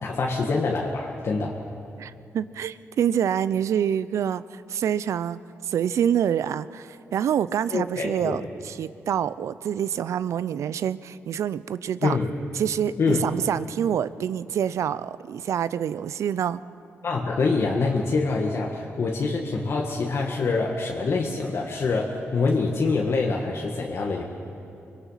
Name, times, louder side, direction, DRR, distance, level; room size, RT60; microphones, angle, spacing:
voice 1, 0.0-1.6 7.7-8.4 12.0-12.3 13.0-13.2 17.0-24.2, left 4 dB, 60° left, -1 dB, 1.7 m, -25 dB
voice 2, 2.0-12.2 12.6-16.6, right 9 dB, 80° right, 16 dB, 0.5 m, -26 dB
24.5 x 21.0 x 5.7 m, 2.7 s
cardioid pair, 95°, 5 cm